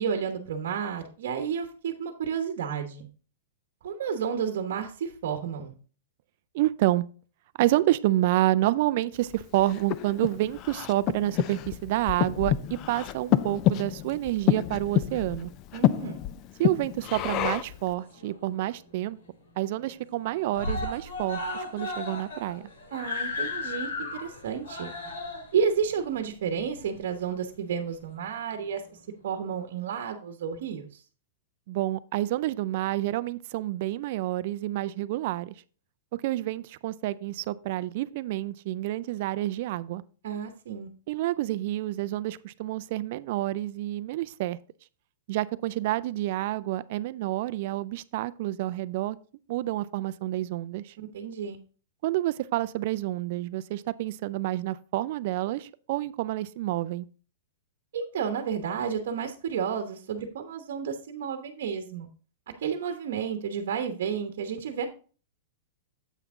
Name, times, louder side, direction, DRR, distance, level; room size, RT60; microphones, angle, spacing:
voice 1, 0.0-3.1 3.8-5.7 15.7-16.2 22.9-24.9 25.5-28.8 29.2-31.0 40.2-40.9 51.0-51.6 57.9-62.1 62.6-64.9, right 7 dB, 60° right, 1.0 m, -31 dB
voice 2, 6.5-7.1 7.6-15.5 16.6-19.2 19.6-22.7 31.7-35.5 36.1-40.0 41.1-44.6 45.3-49.2 49.5-50.9 52.0-57.1, right 15 dB, 45° right, 0.4 m, -28 dB
Breathing, 9.3-17.8, left 13 dB, 25° left, 0.3 m, -28 dB
Screaming, 17.7-18.6 18.9-19.0 19.3-19.4 19.7-20.2 20.5-27.3 28.2-28.3, left 2 dB, 70° left, 2.8 m, -35 dB
8.1 x 5.8 x 3.6 m
supercardioid pair, 170°, 0 cm